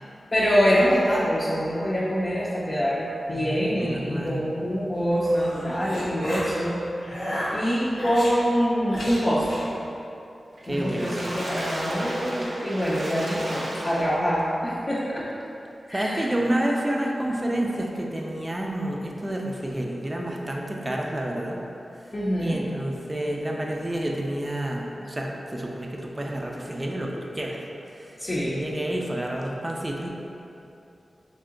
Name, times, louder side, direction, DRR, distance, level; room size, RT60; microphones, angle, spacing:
voice 1, 0.3-6.8 7.5-9.6 10.7-15.3 15.9-16.3 22.1-22.6 28.2-28.6, equal, 40° left, -9 dB, 0.6 m, -25 dB
voice 2, 3.3-4.4 10.7-11.1 15.9-21.6 22.4-27.6 28.1-28.2 28.4-30.1, right 1 dB, 25° right, -1 dB, 0.4 m, -29 dB
sound 1, 5.0-6.6 7.0-8.3 8.9-9.7, equal, 90° left, 0.9 m, -33 dB
Water / Splash splatter, 10.6-14.4 15.0-15.1 15.4-15.5, right 1 dB, 70° right, 0.7 m, -34 dB
3.3 x 2.8 x 3.7 m, 2.8 s
cardioid pair, 60°, 0 cm